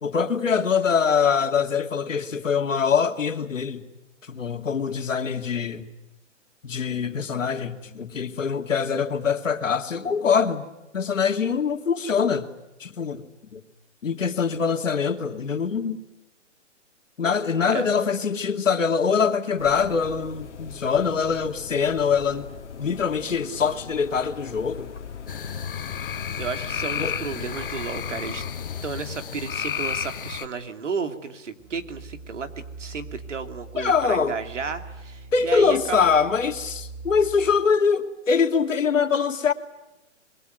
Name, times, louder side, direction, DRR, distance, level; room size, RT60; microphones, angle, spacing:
voice 1, 0.0-3.8 4.3-5.8 6.6-10.6 10.9-12.5 12.8-13.2 13.5-13.6 14.0-16.0 17.2-22.4 22.8-24.9 26.9-27.1 33.8-34.4 35.3-39.5, left 6 dB, 85° left, 6 dB, 2.7 m, -23 dB
sound 1, 19.6-28.8, left 7 dB, 65° left, 2.5 m, -41 dB
sound 2, 25.3-30.5, left 8 dB, 45° left, 1.6 m, -32 dB
voice 2, 26.4-28.4 28.8-36.1, right 5 dB, 70° right, 8 dB, 3.0 m, -33 dB
sound 3, 31.6-37.5, right 4 dB, 25° right, 1.7 m, -42 dB
26.0 x 22.5 x 9.3 m, 0.97 s
hypercardioid pair, 170°, 38 cm